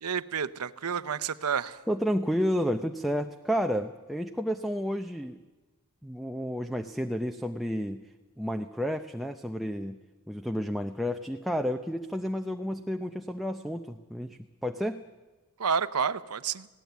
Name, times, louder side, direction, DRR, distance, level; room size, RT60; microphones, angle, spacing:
voice 1, 0.0-1.8 15.6-16.7, right 6 dB, 85° right, 14 dB, 0.8 m, -30 dB
voice 2, 1.9-5.4 6.0-8.0 8.4-10.0 10.3-15.0, equal, ahead, 4 dB, 0.6 m, -31 dB
19.5 x 17.0 x 9.3 m, 1.2 s
head